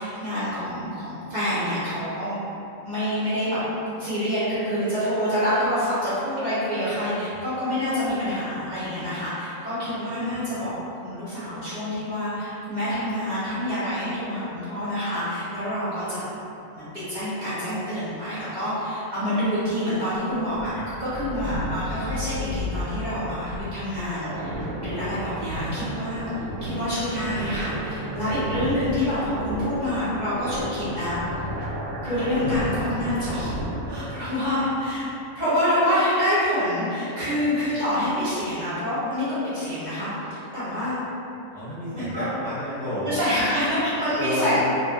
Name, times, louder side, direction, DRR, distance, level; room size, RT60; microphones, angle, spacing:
voice 1, 0.0-2.4 2.8-3.6 4.0-10.7 11.0-16.2 16.7-20.7 21.0-26.3 26.6-31.2 32.0-33.6 33.9-35.1 35.4-39.3 39.5-41.0 41.9-42.3 43.0-44.6, equal, 40° right, -13 dB, 0.8 m, -27 dB
voice 2, 7.3-7.7 41.5-43.1 44.2-44.6, left 1 dB, ahead, -17 dB, 0.8 m, -30 dB
sound 1, 20.0-34.2, equal, 65° right, 0.9 m, -33 dB
2.8 x 2.7 x 2.4 m, 2.9 s
omnidirectional pair, 1.5 m